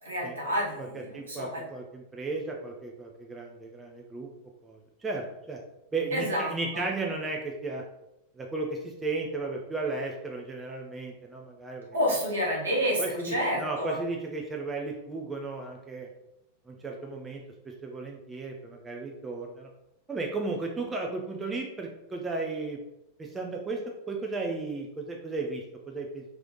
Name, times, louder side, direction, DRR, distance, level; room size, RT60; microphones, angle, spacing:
voice 1, 0.0-1.6 6.1-6.8 11.9-14.0, equal, 70° right, -3 dB, 1.4 m, -29 dB
voice 2, 1.1-4.3 4.6-5.6 5.9-7.8 8.3-12.0 13.0-16.1 16.7-19.7 20.1-22.8 23.2-23.8 24.1-26.2, right 3 dB, 15° right, 0 dB, 0.6 m, -34 dB
3.2 x 3.1 x 3.9 m, 0.84 s
figure-of-eight pair, 90°, 0 cm